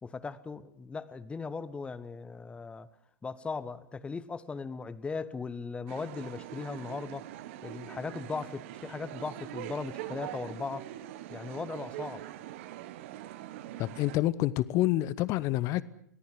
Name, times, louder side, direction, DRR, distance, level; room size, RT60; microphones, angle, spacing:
voice 1, 0.0-2.9 3.2-7.2 7.6-10.9 11.3-12.2, left 4 dB, 10° left, 1.3 m, -38 dB
sound 1, 5.9-14.2, right 13 dB, 45° right, 1.4 m, -43 dB
voice 2, 13.8-15.8, left 16 dB, 35° left, 1.0 m, -28 dB
23.0 x 18.0 x 9.8 m
figure-of-eight pair, 100°, 9 cm